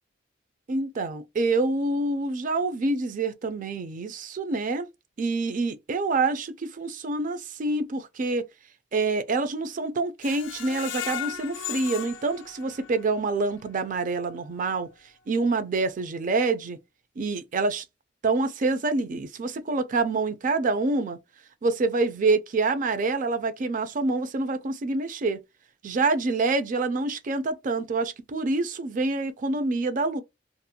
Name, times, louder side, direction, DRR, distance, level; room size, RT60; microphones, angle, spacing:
voice 1, 0.7-4.9 5.2-8.5 8.9-14.9 15.3-16.8 17.2-17.8 18.2-21.2 21.6-25.4 25.8-30.2, right 3 dB, 45° right, 0.4 m, -26 dB
Screech, 10.2-13.2 13.6-13.7 14.1-14.2, left 11 dB, 85° left, 0.4 m, -36 dB
2.5 x 2.1 x 2.7 m
head